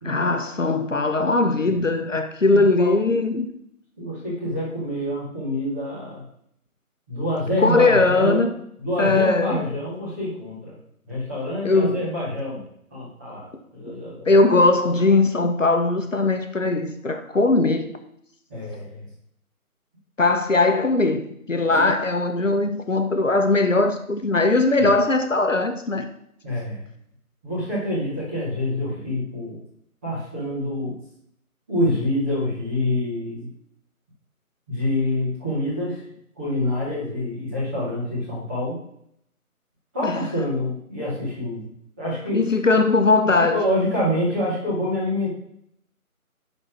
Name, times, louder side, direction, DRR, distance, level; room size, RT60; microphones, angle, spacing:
voice 1, 0.0-3.5 7.6-8.5 9.0-9.6 11.6-12.1 14.3-17.9 20.2-26.1 40.0-40.2 42.3-43.6, left 3 dB, 60° left, 1.1 m, -20 dB
voice 2, 2.5-3.2 4.0-6.2 7.1-8.5 8.8-10.8 11.0-14.3 18.5-19.0 21.6-21.9 26.4-26.9 27.4-29.6 30.0-31.0 31.7-33.5 34.7-36.0 36.4-38.8 39.9-42.4 43.5-45.3, left 1 dB, 10° right, 2.2 m, -27 dB
11.0 x 4.3 x 6.2 m
figure-of-eight pair, 170°, 44 cm